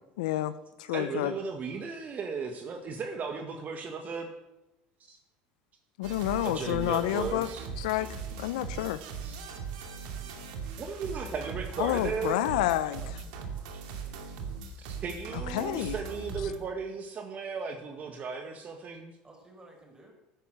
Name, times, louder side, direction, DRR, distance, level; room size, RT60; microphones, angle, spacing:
voice 1, 0.2-1.3 6.0-7.5 7.8-9.0 11.8-13.2 15.3-16.0, left 14 dB, 85° left, 15 dB, 0.7 m, -29 dB
voice 2, 0.9-4.3 5.0-5.2 6.4-7.7 8.0-8.1 9.2-9.4 10.1-10.2 10.8-12.4 13.5-13.8 14.8-19.1, right 5 dB, 40° right, 4 dB, 1.7 m, -36 dB
sound 1, 6.0-16.6, right 5 dB, 80° right, 2.6 m, -39 dB
voice 3, 12.1-13.1 19.2-20.1, right 2 dB, 20° right, 1 dB, 5.7 m, -52 dB
12.5 x 10.0 x 7.8 m, 0.95 s
supercardioid pair, 90°, 4 cm